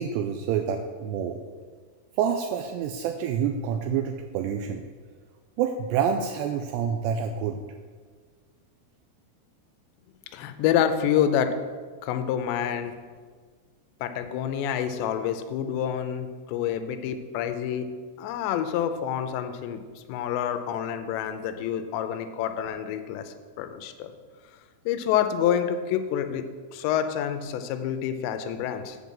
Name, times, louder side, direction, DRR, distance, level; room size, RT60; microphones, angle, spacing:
voice 1, 0.0-1.4 2.2-4.8 5.6-7.6, right 7 dB, 85° right, 5 dB, 2.6 m, -27 dB
voice 2, 10.3-11.6 12.0-13.0 14.0-17.9 18.2-19.8 20.1-24.1 24.9-26.4 26.7-29.0, left 9 dB, 90° left, 9 dB, 2.9 m, -27 dB
8.0 x 5.4 x 7.4 m, 1.5 s
omnidirectional pair, 5.1 m